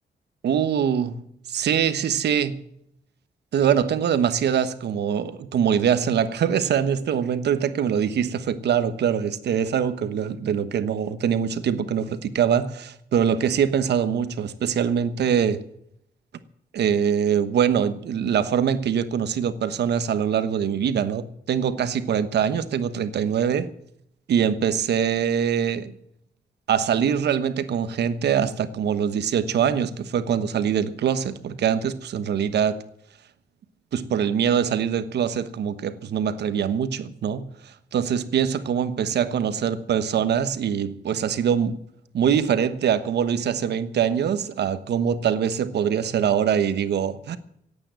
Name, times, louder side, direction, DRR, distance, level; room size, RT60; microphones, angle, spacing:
voice 1, 0.4-1.2 1.5-2.6 3.5-15.6 16.7-23.7 24.3-25.9 26.7-32.8 33.9-41.8 42.1-47.4, right 8 dB, 90° right, 1.2 m, -23 dB
17.0 x 8.8 x 7.6 m
wide cardioid pair, 145°, 17 cm